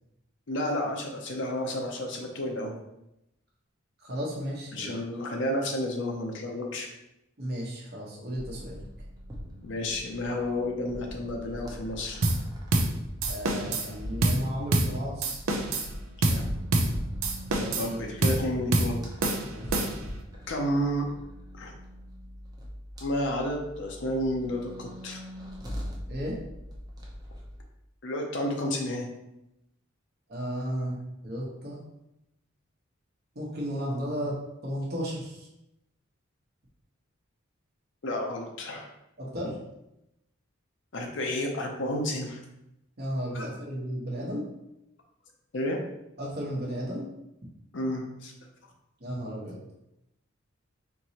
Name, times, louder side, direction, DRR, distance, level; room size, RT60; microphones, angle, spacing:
voice 1, 0.5-2.7 4.7-6.9 9.6-12.2 16.2-16.5 17.8-19.0 20.5-21.1 21.5-21.7 23.0-25.2 28.0-29.1 38.0-38.9 40.9-42.4 43.3-43.5 45.5-45.8 47.7-48.3, left 1 dB, 60° left, 1 dB, 0.6 m, -31 dB
voice 2, 4.0-4.9 7.4-8.9 13.3-15.4 17.5-18.0 19.5-19.8 26.1-26.4 30.3-31.8 33.3-34.3 34.6-35.5 39.2-39.5 43.0-44.5 46.2-47.0 49.0-49.6, equal, 50° right, -4 dB, 1.0 m, -34 dB
sound 1, 8.3-27.6, equal, 20° right, 0.7 m, -41 dB
sound 2, 12.2-12.4 12.7-12.9 13.2-13.9 14.2-14.4 14.7-14.9 15.2-15.9 16.2-16.4 16.7-16.9 17.2-17.9 18.2-18.4 18.7-18.9 19.2-20.1, right 2 dB, 85° right, 0.6 m, -26 dB
4.5 x 3.0 x 2.8 m, 0.87 s
head